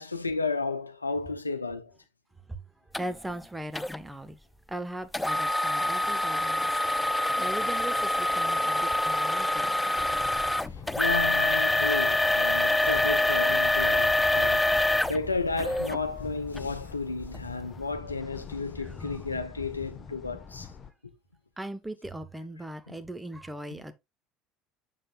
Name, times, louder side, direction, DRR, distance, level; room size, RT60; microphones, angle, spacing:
voice 1, 0.0-1.9 11.0-20.7 23.7-23.8, left 3 dB, 90° left, 0.7 m, -33 dB
sound 1, 2.9-3.0 3.7-4.0 5.1-16.0 16.6-16.7 17.3-17.4, left 1 dB, 10° left, 0.4 m, -25 dB
voice 2, 3.0-6.7 7.1-9.9 17.6-17.8 18.8-19.2 21.6-23.9, right 1 dB, 10° right, 1.0 m, -39 dB
sound 2, 9.9-20.9, left 5 dB, 35° left, 1.1 m, -44 dB
7.5 x 6.7 x 2.3 m
figure-of-eight pair, 65°, 0 cm